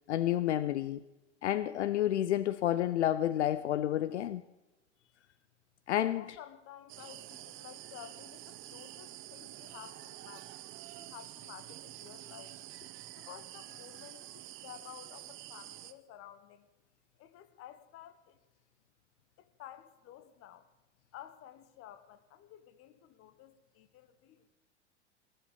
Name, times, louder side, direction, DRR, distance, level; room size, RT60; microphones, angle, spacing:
voice 1, 0.1-1.0 1.4-4.4 5.9-6.2, left 12 dB, 75° left, 16 dB, 0.5 m, -30 dB
voice 2, 5.0-5.4 5.9-10.5 10.9-12.6 13.2-16.7 17.2-18.4 19.4-20.7 21.1-24.5, left 11 dB, 40° left, 12 dB, 1.3 m, -52 dB
sound 1, 6.9-15.9, right 15 dB, 35° right, 0.8 m, -48 dB
18.0 x 7.5 x 6.8 m, 1.0 s
figure-of-eight pair, 85°, 35 cm